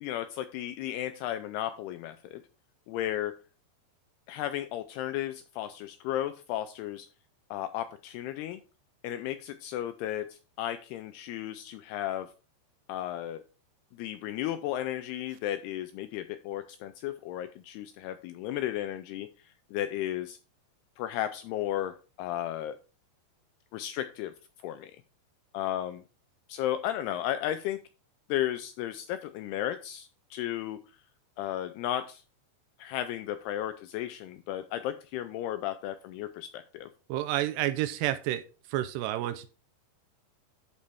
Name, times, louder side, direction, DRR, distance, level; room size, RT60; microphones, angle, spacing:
voice 1, 0.0-2.4 2.9-3.3 4.3-7.1 7.5-8.6 9.0-12.3 12.9-13.4 14.0-20.4 21.0-22.8 23.7-24.3 24.6-24.9 25.5-26.0 26.5-27.8 28.3-30.8 31.4-32.2 32.8-36.9, left 12 dB, 85° left, 11 dB, 2.3 m, -34 dB
voice 2, 37.1-38.4 38.7-39.5, right 14 dB, 80° right, 12 dB, 2.6 m, -29 dB
11.5 x 5.3 x 3.4 m, 0.34 s
omnidirectional pair, 5.1 m